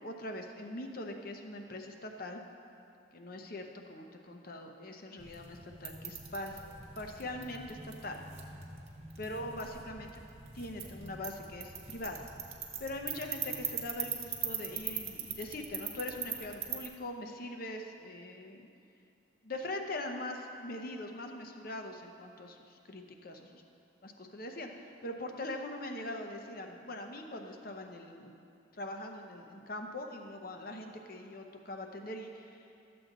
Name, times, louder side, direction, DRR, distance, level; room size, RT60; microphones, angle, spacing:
voice 1, 0.0-2.4 3.1-6.6 7.0-8.2 9.2-10.2 10.5-12.2 12.8-18.7 19.4-23.6 24.0-28.3 28.8-32.6, left 1 dB, 50° left, 4 dB, 0.8 m, -42 dB
sound 1, 5.2-16.9, right 7 dB, 35° right, 1.2 m, -42 dB
13.0 x 7.8 x 3.9 m, 2.6 s
head